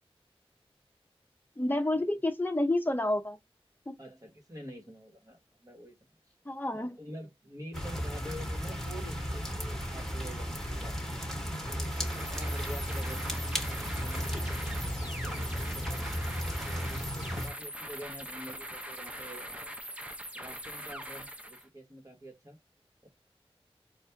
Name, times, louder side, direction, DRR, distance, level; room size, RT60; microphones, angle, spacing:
voice 1, 1.6-3.4 3.9-4.0 6.5-7.0, left 1 dB, 20° left, 0.8 m, -29 dB
voice 2, 4.0-5.9 6.7-11.3 11.6-16.1 16.6-19.7 20.3-22.6 23.0-23.1, equal, 35° right, 1.5 m, -47 dB
sound 1, 7.7-17.5, equal, 5° left, 1.6 m, -35 dB
sound 2, 11.8-21.7, equal, 10° right, 0.7 m, -42 dB
4.3 x 2.5 x 3.5 m
wide cardioid pair, 60°, 10 cm